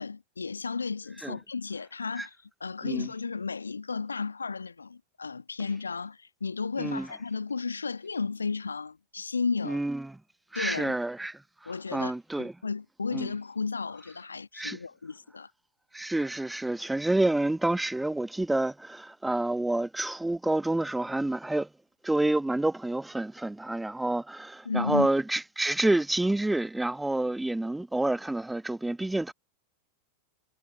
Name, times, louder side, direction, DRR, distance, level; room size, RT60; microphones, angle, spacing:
voice 1, 0.0-9.8 10.5-11.0 11.6-12.1 12.4-15.5 24.6-25.1, left 4 dB, 75° left, 1.5 m, -33 dB
voice 2, 9.6-10.1 10.5-12.5 13.1-13.3 14.6-14.8 15.9-21.7 22.0-29.3, right 2 dB, 5° right, 1.6 m, -28 dB
figure-of-eight pair, 90°, 0 cm